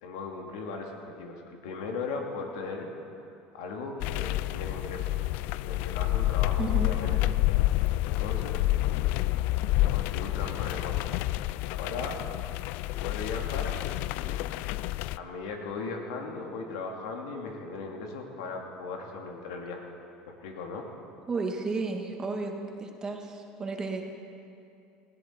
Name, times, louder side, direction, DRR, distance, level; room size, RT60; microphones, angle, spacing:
voice 1, 0.0-2.9 3.5-5.3 5.6-7.2 8.0-8.7 9.9-11.0 11.8-12.2 13.0-13.8 14.1-14.5 15.1-19.8 20.3-20.9, left 4 dB, 85° left, 2 dB, 2.4 m, -38 dB
sound 1, 4.0-15.2, left 17 dB, 65° left, 0.3 m, -28 dB
voice 2, 6.6-6.9 21.3-22.5 22.8-24.0, right 3 dB, 25° right, 2 dB, 2.0 m, -32 dB
19.5 x 16.5 x 4.6 m, 2.6 s
supercardioid pair, 115°, 3 cm